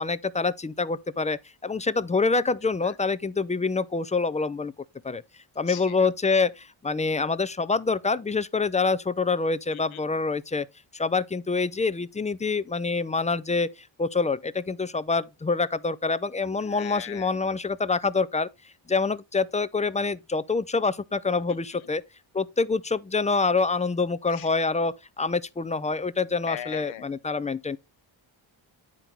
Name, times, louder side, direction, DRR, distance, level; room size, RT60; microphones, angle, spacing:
voice 1, 0.0-4.7 5.0-5.2 5.6-10.7 10.9-18.5 18.9-22.0 22.3-27.8, left 4 dB, 15° left, 0.3 m, -26 dB
voice 2, 16.7-17.3 21.5-21.6 24.3-24.5 26.4-27.1, left 12 dB, 85° left, 0.8 m, -38 dB
9.7 x 4.5 x 3.9 m
cardioid pair, 90°, 47 cm